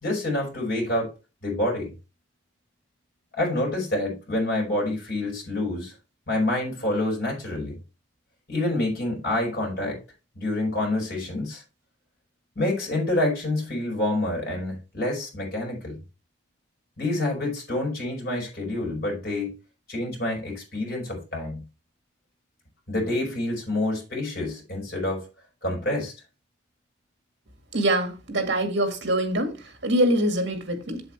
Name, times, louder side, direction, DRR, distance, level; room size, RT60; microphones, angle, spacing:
voice 1, 0.0-1.1 1.4-1.9 3.4-5.9 6.3-7.8 8.5-10.0 10.4-11.6 12.6-16.0 17.0-19.6 19.9-21.6 22.9-25.3 25.6-26.1, left 1 dB, 50° left, 5.5 m, -27 dB
voice 2, 27.7-29.5 29.8-31.0, right 1 dB, 65° right, 2.0 m, -24 dB
8.1 x 7.7 x 3.3 m
head